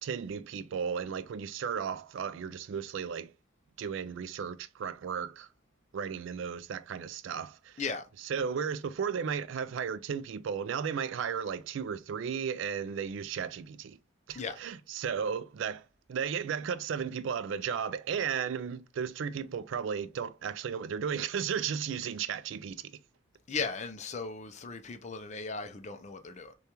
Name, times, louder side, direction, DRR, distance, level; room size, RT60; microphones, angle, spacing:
voice 1, 0.0-3.3 3.8-5.5 5.9-7.8 8.2-14.0 14.3-15.8 16.1-22.9, right 7 dB, 65° right, 0.3 m, -34 dB
voice 2, 23.5-26.5, left 4 dB, 35° left, 0.5 m, -37 dB
6.5 x 2.3 x 2.9 m
head